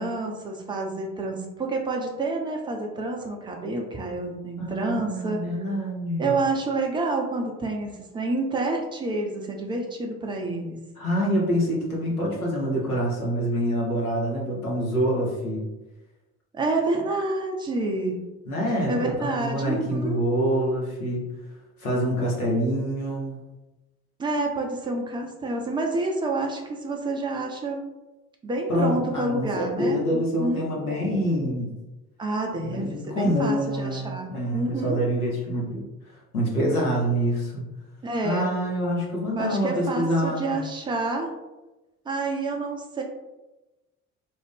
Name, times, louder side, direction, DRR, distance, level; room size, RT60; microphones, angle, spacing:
voice 1, 0.0-5.4 6.2-10.8 16.5-18.2 18.9-20.3 24.2-27.8 28.4-30.7 32.2-35.0 38.0-38.5 39.4-41.3 42.1-43.0, right 2 dB, 10° right, 1 dB, 0.3 m, -28 dB
voice 2, 4.6-6.3 11.0-15.6 18.5-21.3 21.8-23.4 28.7-31.7 32.6-35.8 36.3-37.7 38.2-40.6, equal, 85° left, -3 dB, 0.7 m, -26 dB
2.4 x 2.0 x 3.4 m, 1.0 s
figure-of-eight pair, 55°, 43 cm